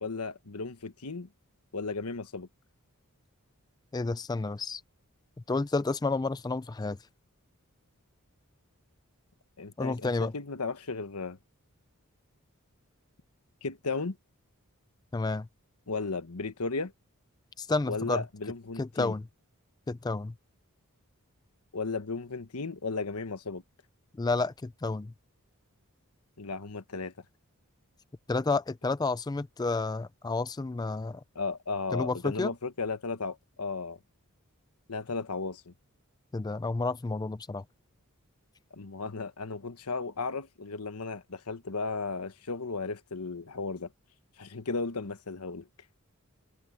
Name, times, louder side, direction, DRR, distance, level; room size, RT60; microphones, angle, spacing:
voice 1, 0.0-1.3 1.7-2.5 9.6-11.4 13.6-14.2 15.9-16.9 17.9-19.1 21.7-23.6 26.4-27.1 31.3-34.0 34.9-35.7 38.7-43.9 44.4-45.7, left 4 dB, 85° left, 1.2 m, -35 dB
voice 2, 3.9-4.8 5.5-7.0 9.8-10.3 15.1-15.5 17.6-18.2 18.8-19.2 19.9-20.3 24.2-25.1 28.3-31.2 31.9-32.5 36.3-37.6, left 3 dB, 20° left, 0.4 m, -30 dB
head